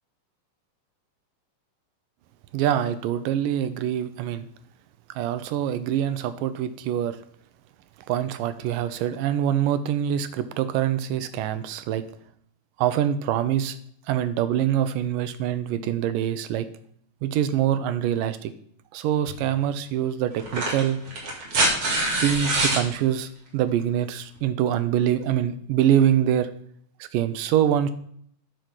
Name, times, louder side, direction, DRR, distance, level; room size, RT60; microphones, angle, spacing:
voice 1, 2.5-4.5 5.2-7.2 8.1-12.0 12.8-13.8 14.1-16.7 17.2-18.5 18.9-21.0 22.2-26.5 27.0-27.9, right 10 dB, 80° right, 11 dB, 2.3 m, -24 dB
sound 1, 19.3-19.4 20.4-22.8 24.4-24.5, right 2 dB, 50° right, 2.9 m, -24 dB
9.5 x 5.2 x 6.0 m, 0.64 s
omnidirectional pair, 3.9 m